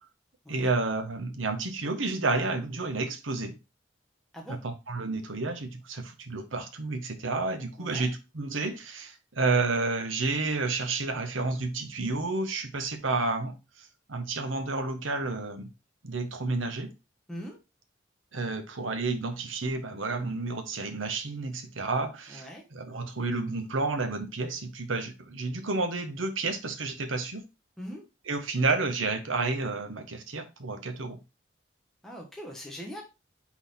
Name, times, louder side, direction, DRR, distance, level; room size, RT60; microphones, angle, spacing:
voice 1, 0.5-3.6 4.6-15.7 16.0-16.9 18.3-27.4 28.3-31.2, right 3 dB, 85° right, 1.1 m, -30 dB
voice 2, 7.8-8.1 17.3-17.6 22.3-22.6 27.8-28.0 32.0-33.0, equal, ahead, 1.2 m, -41 dB
6.0 x 4.1 x 4.1 m
head